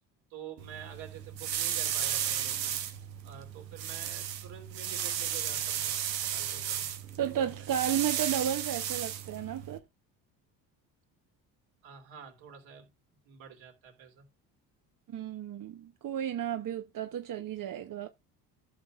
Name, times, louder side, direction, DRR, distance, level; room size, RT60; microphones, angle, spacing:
voice 1, 0.3-2.7 3.2-5.9 6.3-6.9 7.2-7.5 11.8-12.9 13.2-14.2, right 8 dB, 65° right, 3.7 m, -48 dB
sound 1, 0.6-9.8, right 10 dB, 90° right, 1.3 m, -34 dB
voice 2, 7.2-9.8 15.1-18.1, right 10 dB, 40° right, 1.0 m, -33 dB
15.0 x 6.2 x 2.5 m
hypercardioid pair, 60°, 49 cm